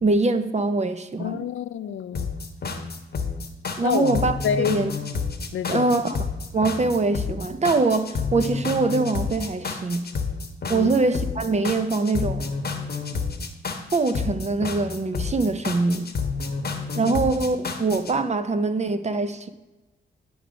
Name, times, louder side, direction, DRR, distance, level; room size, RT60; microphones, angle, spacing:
voice 1, 0.0-1.4 3.8-4.4 4.7-4.9 5.7-6.2 6.5-10.1 10.7-12.5 13.9-16.1 17.0-19.5, right 3 dB, 35° right, 0.6 m, -23 dB
voice 2, 1.2-2.3 3.8-4.9 5.5-6.0 10.7-11.0 17.0-17.2, left 8 dB, 80° left, 0.5 m, -28 dB
sound 1, 2.1-18.1, left 4 dB, 50° left, 1.0 m, -30 dB
9.8 x 3.3 x 5.1 m
cardioid pair, 70°, 20 cm